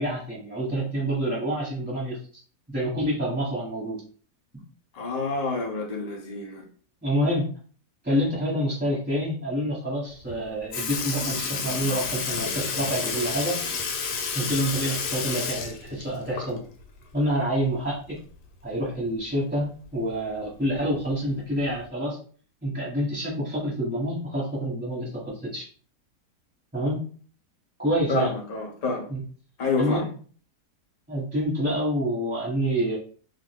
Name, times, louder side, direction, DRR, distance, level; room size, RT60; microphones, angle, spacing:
voice 1, 0.0-2.2 2.7-4.0 7.0-7.5 8.0-13.6 14.3-16.6 17.1-18.2 18.6-22.2 22.6-25.7 26.7-27.0 27.8-28.3 29.1-29.2 29.8-30.1 31.1-33.0, equal, 5° right, 1.0 m, -27 dB
voice 2, 4.9-6.6 28.1-29.1 29.6-30.1, left 3 dB, 60° left, 0.4 m, -28 dB
Sink (filling or washing) / Liquid, 10.3-10.4 10.7-16.8 17.2-17.3 18.8-18.9 19.8-19.9 20.8-21.0 21.8-21.9, left 5 dB, 90° left, 1.3 m, -30 dB
2.5 x 2.4 x 3.5 m
omnidirectional pair, 1.8 m